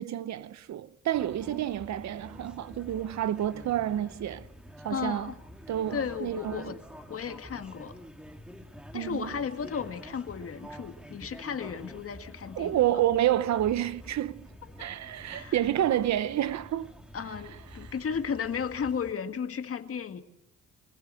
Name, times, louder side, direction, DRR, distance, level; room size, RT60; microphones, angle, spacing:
voice 1, 0.0-4.5 4.8-5.3 5.7-6.7 8.9-9.3 12.6-14.4 14.8-16.9, right 12 dB, 65° right, 0.8 m, -29 dB
sound 1, 1.1-19.1, equal, 5° right, 1.8 m, -48 dB
voice 2, 4.9-5.4 5.9-6.8 7.1-7.9 8.9-12.8 14.8-14.9 15.3-15.6 17.1-20.2, left 6 dB, 50° left, 1.7 m, -34 dB
24.5 x 16.0 x 7.7 m
cardioid pair, 90°, 30 cm